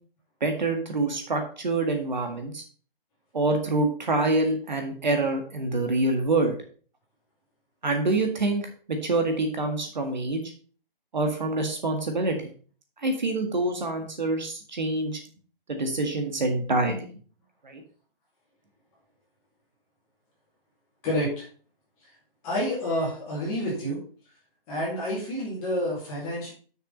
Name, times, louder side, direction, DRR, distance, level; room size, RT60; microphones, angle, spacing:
voice 1, 0.4-2.6 3.3-6.6 7.8-8.7 9.0-10.4 11.1-12.5 13.0-15.1 15.7-17.1 17.6-17.8, right 2 dB, 50° right, 5 dB, 1.9 m, -26 dB
voice 2, 21.0-21.4 22.4-24.0 24.7-26.5, equal, 10° left, -6 dB, 2.4 m, -28 dB
6.7 x 6.4 x 5.4 m, 0.42 s
hypercardioid pair, 170°, 29 cm